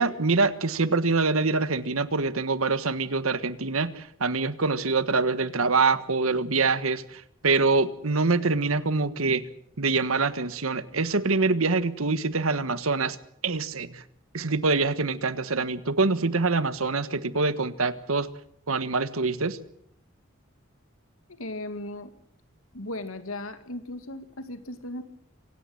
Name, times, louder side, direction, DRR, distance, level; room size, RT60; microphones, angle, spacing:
voice 1, 0.0-9.5 9.8-13.2 13.4-14.0 14.3-18.3 18.7-19.6, right 3 dB, 85° right, 14 dB, 1.4 m, -25 dB
voice 2, 21.3-22.1 22.7-25.0, left 1 dB, 85° left, 10 dB, 2.3 m, -36 dB
26.0 x 17.0 x 7.9 m, 0.70 s
head